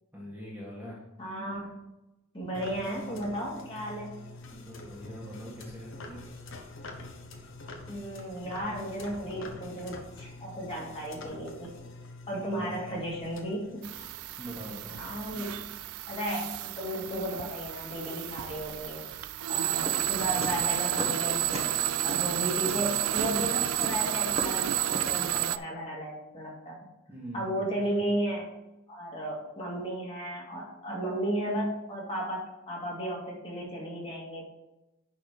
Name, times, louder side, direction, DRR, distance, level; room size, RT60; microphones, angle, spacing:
voice 1, 0.1-1.0 4.5-6.2 12.3-13.0 14.4-15.0 19.6-19.9 22.1-22.3 27.1-28.0, equal, 10° right, -6 dB, 1.8 m, -43 dB
voice 2, 1.2-1.6 2.3-4.1 7.9-11.7 12.3-13.8 15.0-15.5 16.1-19.1 19.5-21.7 22.0-26.8 27.3-28.5 28.9-34.5, right 1 dB, 25° left, -4 dB, 2.4 m, -34 dB
sound 1, 2.5-14.8, left 2 dB, 60° left, 1.2 m, -46 dB
sound 2, 13.8-25.6, right 12 dB, 85° right, 0.4 m, -31 dB
sound 3, 19.9-21.2 21.5-21.8 22.1-25.2, right 1 dB, 30° right, 1.3 m, -36 dB
10.5 x 4.3 x 5.1 m, 0.98 s
head